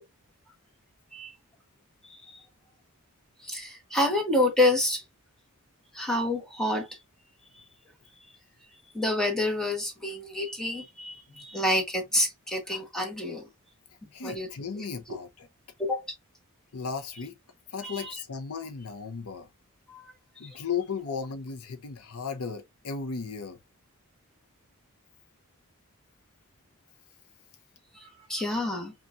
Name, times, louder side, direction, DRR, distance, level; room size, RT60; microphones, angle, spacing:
voice 1, 2.0-2.4 3.4-5.0 5.9-7.0 7.5-7.6 8.9-13.5 14.2-14.5 14.7-14.8 15.8-16.1 17.8-18.2 19.9-20.1 20.4-20.6 27.9-28.9, left 1 dB, 5° left, 1.1 m, -28 dB
voice 2, 14.1-15.5 16.7-17.4 17.7-19.5 20.4-23.6, left 5 dB, 80° left, 0.7 m, -35 dB
5.4 x 2.4 x 2.5 m
head